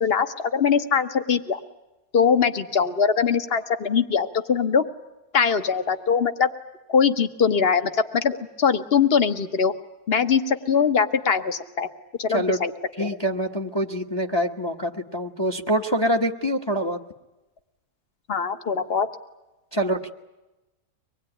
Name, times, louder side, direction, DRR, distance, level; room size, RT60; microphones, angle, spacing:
voice 1, 0.0-1.6 2.1-4.8 5.3-6.5 6.9-9.7 10.1-11.9 12.2-12.7 13.0-13.1 18.3-19.1, left 6 dB, 40° left, 9 dB, 1.5 m, -22 dB
voice 2, 13.0-17.0 19.7-20.1, equal, 20° left, 5 dB, 1.2 m, -25 dB
25.0 x 20.5 x 10.0 m, 1.0 s
omnidirectional pair, 1.7 m